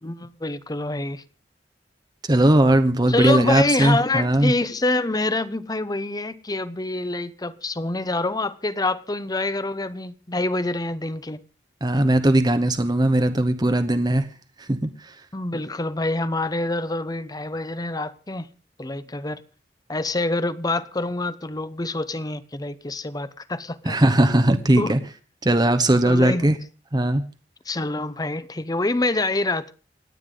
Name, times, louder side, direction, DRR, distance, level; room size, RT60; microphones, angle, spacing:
voice 1, 0.0-1.2 3.1-11.4 15.3-18.5 18.8-19.4 19.9-24.0 24.8-24.9 26.1-26.5 27.7-29.7, left 2 dB, 20° left, 0.9 m, -26 dB
voice 2, 2.3-4.5 11.8-14.3 14.6-15.1 23.8-25.0 25.4-26.6 26.9-27.2, right 1 dB, 25° right, 1.0 m, -19 dB
28.0 x 9.5 x 3.9 m
head